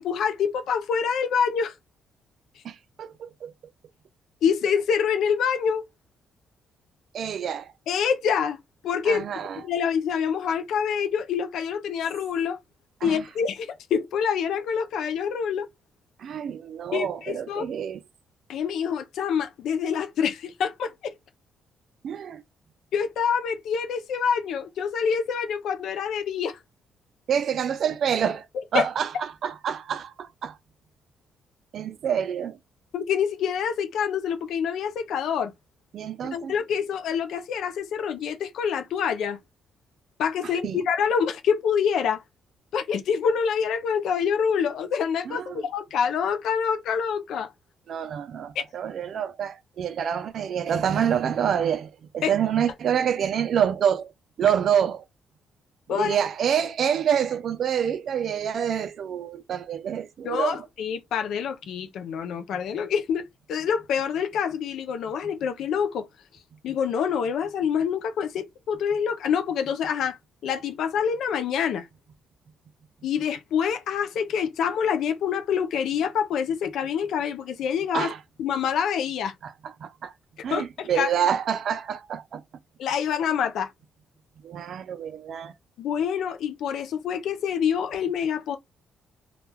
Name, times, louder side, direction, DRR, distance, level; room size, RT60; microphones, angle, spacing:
voice 1, 0.0-1.8 4.4-5.8 7.9-8.6 8.8-12.6 13.0-15.7 16.9-17.7 18.5-21.1 22.9-26.6 28.7-28.8 32.9-35.5 36.3-39.4 40.2-42.2 42.7-47.5 48.6-48.7 52.2-52.3 55.9-56.2 60.2-66.1 66.6-70.2 70.4-71.9 73.0-78.1 78.4-79.3 80.5-81.1 82.8-83.7 85.8-88.6, left 7 dB, 75° left, 0.4 m, -26 dB
voice 2, 2.6-3.5 7.1-7.7 9.1-9.6 13.0-13.2 16.2-18.0 22.0-22.4 27.3-28.5 28.7-30.6 31.7-32.6 35.9-36.5 40.6-40.8 45.3-45.7 47.9-54.1 54.4-55.0 55.9-60.6 77.9-78.2 79.4-80.1 80.4-82.4 84.4-85.5, right 8 dB, 65° right, 0.3 m, -27 dB
2.2 x 2.1 x 3.2 m
cardioid pair, 90°, 0 cm